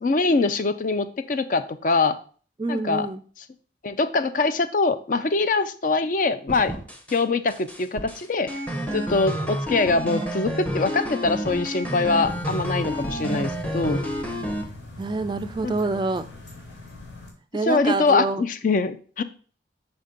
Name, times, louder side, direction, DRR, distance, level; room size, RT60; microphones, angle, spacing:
voice 1, 0.0-2.2 2.7-3.1 3.8-6.7 7.1-8.5 8.9-14.0 15.6-15.7 17.7-19.2, left 3 dB, 45° left, 11 dB, 0.4 m, -23 dB
voice 2, 2.6-3.2 15.0-16.3 17.5-18.4, right 3 dB, 25° right, 10 dB, 0.3 m, -26 dB
sound 1, 6.5-7.2 7.5-14.6, equal, 10° left, 0.7 m, -30 dB
sound 2, 12.3-17.3, left 2 dB, 90° left, 2.3 m, -41 dB
5.9 x 4.1 x 5.0 m, 0.42 s
head